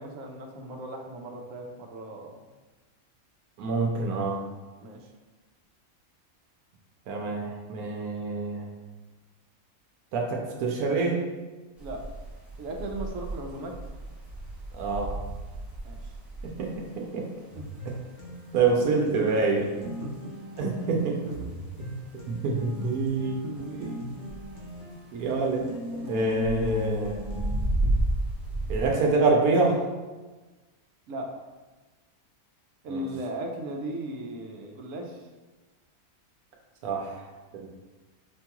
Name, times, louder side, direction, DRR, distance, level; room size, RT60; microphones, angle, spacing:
voice 1, 0.0-2.5 4.8-5.1 11.8-12.0 12.6-13.8 15.8-16.1 17.5-17.6 19.8-20.3 21.3-21.5 22.1-22.4 23.4-24.0 26.0-26.1 31.1-31.3 32.8-35.2, right 1 dB, 70° right, 1 dB, 0.9 m, -37 dB
voice 2, 3.6-4.4 7.1-8.6 10.1-11.2 14.7-15.2 16.4-17.2 18.5-19.7 20.6-21.2 22.3-23.4 25.1-25.7 26.1-27.2 28.7-29.9 32.9-33.1 36.8-37.3 37.5-37.7, right 3 dB, 90° right, 0 dB, 1.1 m, -26 dB
sound 1, 11.8-28.9, right 1 dB, ahead, 0.4 m, -34 dB
sound 2, 17.5-27.6, equal, 55° left, 1.1 m, -40 dB
5.2 x 2.3 x 2.9 m, 1.2 s
omnidirectional pair, 1.5 m